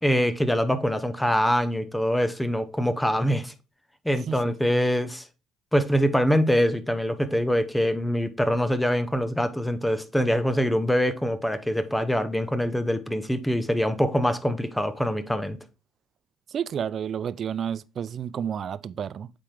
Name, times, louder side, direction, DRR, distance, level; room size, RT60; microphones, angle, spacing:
voice 1, 0.0-3.5 4.0-5.2 5.7-15.6, equal, 5° left, 0.9 m, -24 dB
voice 2, 16.5-19.3, right 8 dB, 50° right, 0.4 m, -31 dB
8.4 x 3.7 x 3.3 m
supercardioid pair, 70°, 0 cm